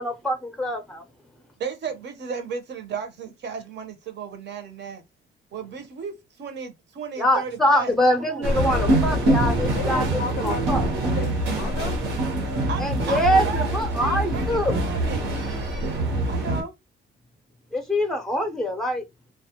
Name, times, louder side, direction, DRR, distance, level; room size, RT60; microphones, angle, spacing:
voice 1, 0.0-1.0 7.2-10.8 12.8-14.8 17.7-19.0, equal, ahead, 0.5 m, -24 dB
voice 2, 1.6-5.0 5.5-8.5 12.7-15.3 16.3-16.7, right 6 dB, 60° right, 0.8 m, -34 dB
sound 1, 8.4-16.6, right 1 dB, 85° right, 1.0 m, -24 dB
voice 3, 9.7-12.0, left 7 dB, 65° left, 0.4 m, -34 dB
2.3 x 2.0 x 2.8 m
cardioid pair, 90°, 20 cm